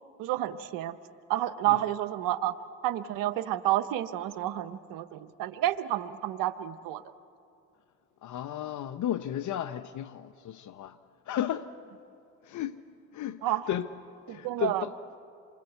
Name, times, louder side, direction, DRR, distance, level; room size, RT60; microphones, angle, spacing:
voice 1, 0.2-1.0 1.3-2.5 2.8-7.0 13.4-13.6 14.3-14.9, right 14 dB, 80° right, 1.1 m, -30 dB
voice 2, 8.2-10.9 11.3-11.7 12.5-12.8 13.2-13.4 13.7-13.9 14.3-14.9, left 11 dB, 65° left, 0.8 m, -33 dB
28.0 x 23.5 x 8.1 m
supercardioid pair, 65°, 33 cm